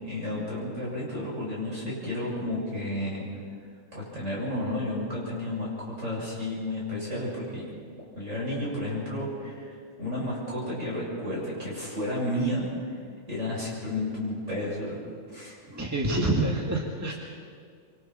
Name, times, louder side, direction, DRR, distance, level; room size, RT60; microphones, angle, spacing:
voice 1, 0.0-3.2 3.9-7.7 8.2-13.0 13.3-15.0 15.3-15.6, left 1 dB, 55° right, -6 dB, 8.1 m, -32 dB
voice 2, 15.7-17.1, right 2 dB, 10° right, -2 dB, 2.0 m, -27 dB
27.0 x 25.0 x 4.4 m, 2.1 s
omnidirectional pair, 1.5 m